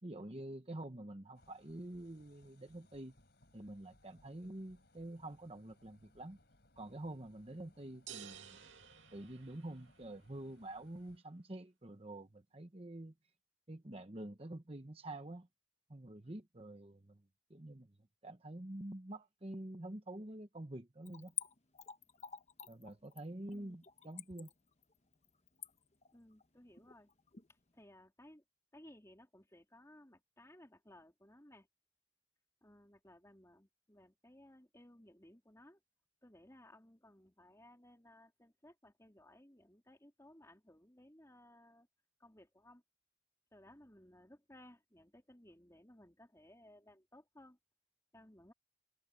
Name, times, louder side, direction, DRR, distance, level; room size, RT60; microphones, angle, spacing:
voice 1, 0.0-3.1 3.5-6.4 6.8-8.7 9.1-13.1 13.7-15.5 15.9-17.2 17.5-17.9 18.2-21.3 22.7-24.5, right 1 dB, 30° right, 1.1 m, -47 dB
sound 1, 1.3-11.2, left 1 dB, 55° left, 5.6 m, -68 dB
sound 2, 8.1-10.1, right 9 dB, 80° right, 2.3 m, -53 dB
Splash splatter / Trickle dribble, 21.0-27.5 27.8-27.9, left 9 dB, 35° left, 1.2 m, -48 dB
voice 2, 26.1-27.1 27.7-28.4 28.7-31.7 32.6-35.8 36.2-41.9 42.2-42.8 43.5-47.6 48.1-48.5, left 1 dB, 15° left, 3.4 m, -60 dB
head